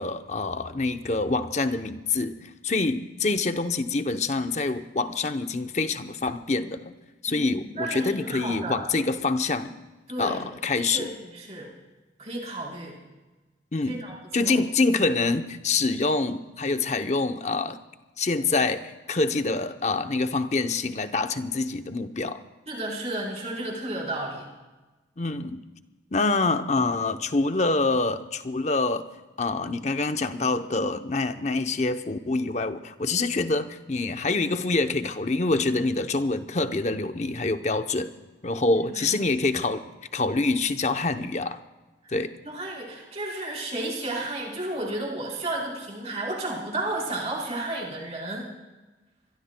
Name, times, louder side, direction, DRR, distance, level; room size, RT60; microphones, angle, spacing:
voice 1, 0.0-6.9 7.2-9.8 10.2-11.1 13.7-14.0 14.3-17.8 18.2-22.4 25.2-25.6 26.1-29.1 29.4-38.1 38.4-39.8 40.1-41.6 42.1-42.3, left 3 dB, 40° left, 8 dB, 0.7 m, -26 dB
voice 2, 7.3-8.8 10.1-10.4 10.9-11.7 12.2-13.0 13.9-14.6 22.7-24.5 38.8-39.2 42.0-42.1 42.4-48.5, right 2 dB, 35° right, -3 dB, 4.2 m, -33 dB
25.0 x 22.0 x 2.2 m, 1.2 s
head